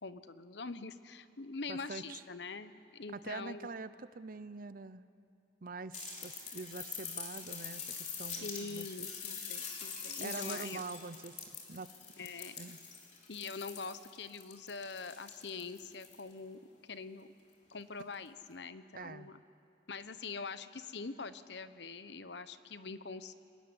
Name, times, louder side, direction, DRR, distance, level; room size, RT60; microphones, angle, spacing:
voice 1, 0.0-3.7 8.4-10.8 12.2-12.6 13.3-17.3 17.7-19.4 19.9-23.4, left 4 dB, 70° left, 12 dB, 1.0 m, -44 dB
voice 2, 1.7-2.2 3.1-5.1 5.6-8.9 10.2-11.9 12.2-12.3 12.6-12.8 18.9-19.3, right 4 dB, 50° right, 14 dB, 0.8 m, -45 dB
sound 1, 5.9-16.3 17.7-17.8, left 6 dB, 45° left, 3.4 m, -44 dB
24.5 x 21.0 x 9.9 m, 2.6 s
head